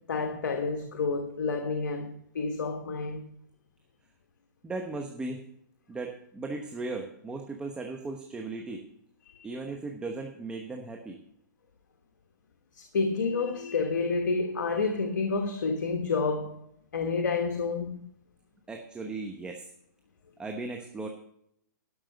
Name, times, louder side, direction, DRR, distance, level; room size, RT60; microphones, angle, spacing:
voice 1, 0.1-3.2 9.2-9.4 12.8-16.6 16.9-18.1, left 4 dB, 75° left, 1.3 m, -29 dB
voice 2, 4.6-5.4 5.9-8.8 9.4-11.2 18.7-19.6 20.4-21.1, right 3 dB, 10° right, 1.0 m, -37 dB
12.0 x 6.5 x 5.3 m
hypercardioid pair, 140°, 10 cm